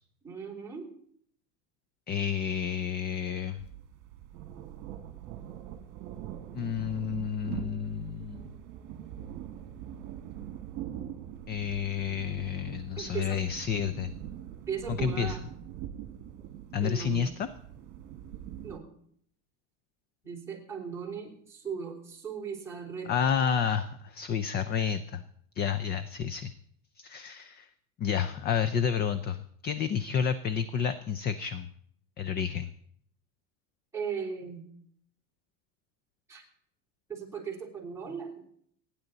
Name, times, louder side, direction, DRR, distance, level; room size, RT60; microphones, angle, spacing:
voice 1, 0.2-0.9 13.0-13.4 14.7-15.5 16.8-17.3 18.6-18.9 20.2-23.1 33.9-34.7 36.3-36.4 37.1-38.4, right 6 dB, 5° right, -3 dB, 3.6 m, -37 dB
voice 2, 2.1-3.6 6.5-8.5 11.5-14.1 15.0-15.4 16.7-17.5 23.1-25.2 25.6-26.5 27.0-27.7 28.0-31.7 32.2-32.7, left 7 dB, 25° left, 12 dB, 0.5 m, -30 dB
sound 1, 3.6-18.8, right 11 dB, 50° right, 1.8 m, -43 dB
29.0 x 10.0 x 4.0 m, 0.66 s
cardioid pair, 155°, 38 cm